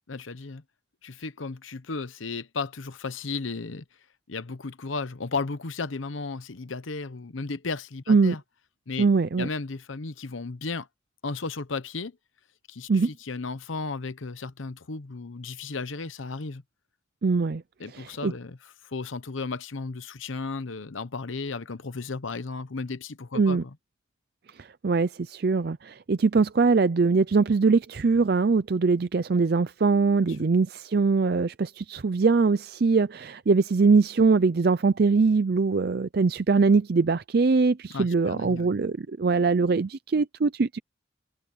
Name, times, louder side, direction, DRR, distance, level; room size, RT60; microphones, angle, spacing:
voice 1, 0.1-0.6 1.0-3.8 4.3-8.4 8.9-9.1 9.4-10.9 11.2-12.1 12.7-16.6 17.8-18.6 18.8-23.7 30.3-30.5 37.9-38.8, left 4 dB, 85° left, 0.9 m, -34 dB
voice 2, 9.0-9.5 12.9-13.1 17.2-17.6 17.9-18.3 23.3-23.6 24.6-40.8, right 4 dB, 50° right, 0.4 m, -22 dB
head